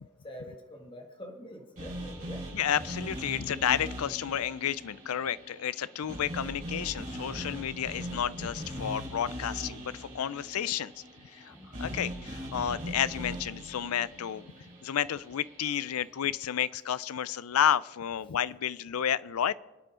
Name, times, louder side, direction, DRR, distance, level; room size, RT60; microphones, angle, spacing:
voice 1, 0.2-2.5 11.4-11.7 19.0-19.1, equal, 25° left, 3 dB, 1.7 m, -46 dB
sound 1, 1.8-15.9, equal, 35° right, 5.2 m, -41 dB
voice 2, 2.5-10.9 11.3-14.4 14.8-19.5, left 9 dB, 80° left, 18 dB, 0.4 m, -31 dB
26.0 x 9.3 x 3.8 m, 1.2 s
head